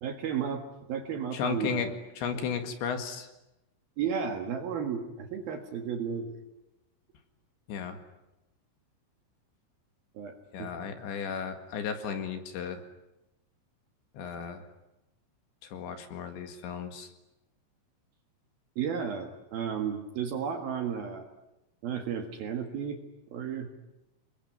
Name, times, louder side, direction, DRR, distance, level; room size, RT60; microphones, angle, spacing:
voice 1, 0.0-0.6 0.9-1.9 2.3-2.5 4.0-6.4 10.1-10.3 10.6-10.7 18.8-21.3 21.8-23.0 23.3-23.7, right 7 dB, 60° right, 5 dB, 3.0 m, -33 dB
voice 2, 1.3-1.9 2.2-3.3 7.7-8.0 10.5-12.8 14.1-14.7 15.7-17.1, left 6 dB, 65° left, 7 dB, 3.9 m, -34 dB
28.5 x 22.0 x 9.4 m, 0.92 s
omnidirectional pair, 6.0 m